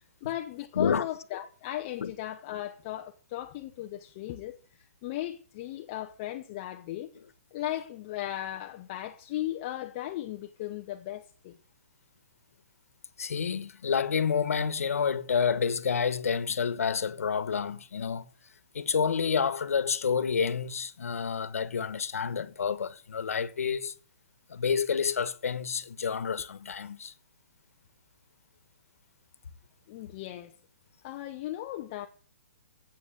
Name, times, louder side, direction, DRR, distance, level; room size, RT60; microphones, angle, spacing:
voice 1, 0.2-4.6 5.0-7.1 7.5-11.5 29.9-30.5 31.0-32.1, left 14 dB, 20° left, 0.7 m, -36 dB
voice 2, 0.7-1.1 2.0-2.1 13.2-18.3 18.7-23.9 24.5-27.1, left 6 dB, 80° left, 1.3 m, -29 dB
8.9 x 8.3 x 9.1 m
hypercardioid pair, 175°, 8 cm